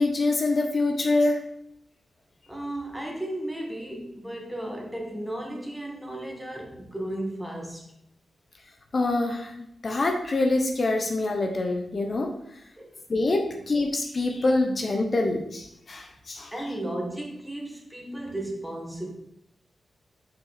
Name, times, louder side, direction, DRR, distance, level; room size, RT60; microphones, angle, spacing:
voice 1, 0.0-1.4 8.9-9.5 9.8-12.3 13.1-16.5, left 2 dB, 50° left, 3 dB, 0.9 m, -25 dB
voice 2, 2.5-7.8 12.8-12.9 16.5-19.1, right 1 dB, 5° right, 0 dB, 2.0 m, -34 dB
6.0 x 4.7 x 4.4 m, 0.77 s
supercardioid pair, 45°, 0 cm